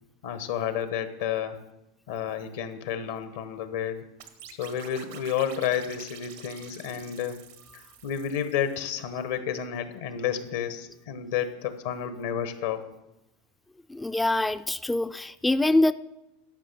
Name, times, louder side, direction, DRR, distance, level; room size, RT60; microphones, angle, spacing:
voice 1, 0.2-1.6 2.1-4.0 4.6-7.4 7.7-12.9, left 9 dB, 75° left, 10 dB, 1.1 m, -31 dB
sound 1, 4.2-9.0, right 9 dB, 75° right, 1.3 m, -48 dB
voice 2, 13.9-15.9, left 2 dB, 10° left, 12 dB, 0.4 m, -24 dB
12.0 x 5.6 x 6.8 m, 0.90 s
hypercardioid pair, 105°, 0 cm